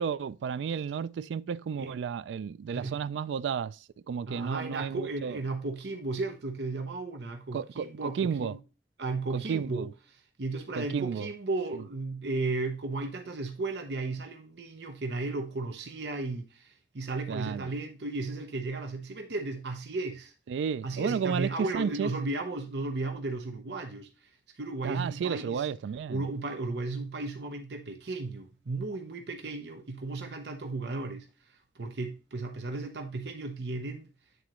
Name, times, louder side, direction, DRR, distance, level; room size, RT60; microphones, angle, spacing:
voice 1, 0.0-3.8 4.1-5.4 7.5-8.5 9.3-9.9 10.8-11.3 11.7-11.8 17.3-17.7 20.5-22.1 24.8-26.2, right 7 dB, 90° right, 0.3 m, -32 dB
voice 2, 4.3-8.6 9.0-9.9 10.4-20.3 20.8-24.3 24.6-25.7 26.1-31.3 31.7-34.1, right 3 dB, 65° right, 0.8 m, -34 dB
9.4 x 3.9 x 3.0 m
head